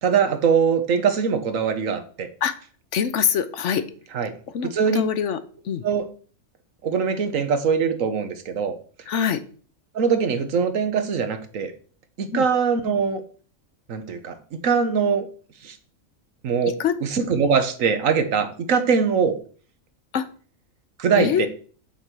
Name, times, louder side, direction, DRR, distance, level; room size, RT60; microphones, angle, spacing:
voice 1, 0.0-2.3 4.1-4.3 4.7-5.0 5.8-6.1 6.8-8.7 9.9-11.7 12.2-13.2 13.9-15.2 15.6-15.8 16.4-19.4 21.0-21.5, right 6 dB, 75° right, 9 dB, 1.3 m, -22 dB
voice 2, 2.9-3.8 4.5-5.4 5.6-5.8 9.1-9.4 12.3-12.5 16.8-16.9 20.1-20.3 21.2-21.5, left 8 dB, 65° left, 12 dB, 1.0 m, -24 dB
7.3 x 4.6 x 6.7 m, 0.42 s
omnidirectional pair, 1.4 m